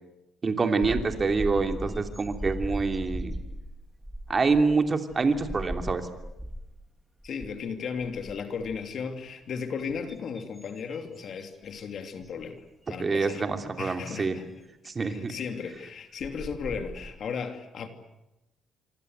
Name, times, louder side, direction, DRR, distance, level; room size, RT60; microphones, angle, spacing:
voice 1, 0.4-3.3 4.3-6.0 13.0-14.4 14.8-15.4, right 4 dB, 30° right, 3.0 m, -26 dB
sound 1, 0.8-6.9 7.2-7.6 7.9-8.9 9.5-11.8 12.2-12.4 13.5-13.6 15.7-15.8 16.2-17.1, equal, 5° right, 2.7 m, -38 dB
voice 2, 7.2-13.4 13.8-14.5 15.0-17.9, left 6 dB, 55° left, 2.9 m, -35 dB
26.0 x 26.0 x 8.1 m
cardioid pair, 115°, 0 cm